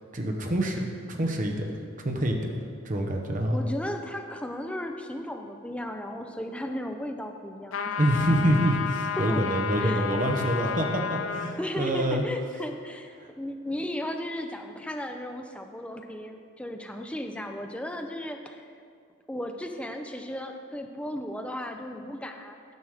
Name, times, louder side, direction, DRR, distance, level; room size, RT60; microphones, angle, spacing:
voice 1, 0.1-1.7 2.0-2.5 2.8-3.6 8.0-12.2, right 1 dB, 40° right, 2 dB, 0.9 m, -26 dB
voice 2, 3.5-8.0 9.2-9.4 9.8-10.2 11.6-18.6 19.3-22.7, left 1 dB, 5° left, 4 dB, 0.4 m, -35 dB
sound 1, 7.7-11.6, left 7 dB, 75° left, 0.5 m, -31 dB
9.4 x 6.0 x 4.9 m, 2.2 s
head